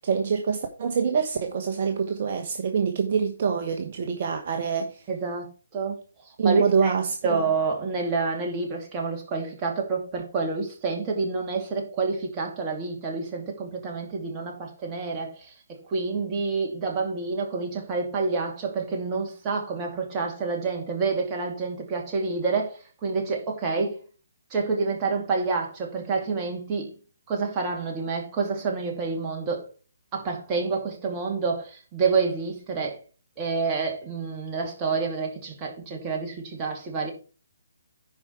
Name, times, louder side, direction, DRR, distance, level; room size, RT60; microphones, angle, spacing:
voice 1, 0.0-5.0 6.4-7.5, right 6 dB, 45° right, 1.2 m, -25 dB
voice 2, 5.1-6.0 6.4-6.9 7.2-24.0 24.5-27.0 27.3-29.7 30.1-33.0 33.4-37.1, right 4 dB, 20° right, 2.6 m, -28 dB
10.5 x 4.9 x 4.6 m
figure-of-eight pair, 140°, 0 cm